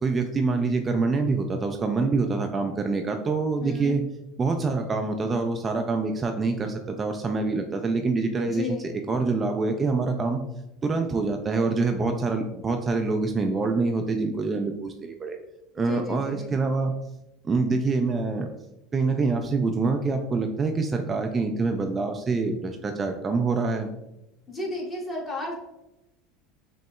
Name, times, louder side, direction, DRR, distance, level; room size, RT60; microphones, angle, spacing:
voice 1, 0.0-4.0 4.4-10.4 10.8-15.4 15.7-16.9 17.4-18.5 18.9-23.9, right 3 dB, 25° right, 4 dB, 0.3 m, -26 dB
voice 2, 3.6-4.0 8.4-8.9 15.8-16.6 24.5-25.5, left 3 dB, 25° left, -2 dB, 1.3 m, -34 dB
6.0 x 2.0 x 2.2 m, 0.91 s
hypercardioid pair, 75°, 0 cm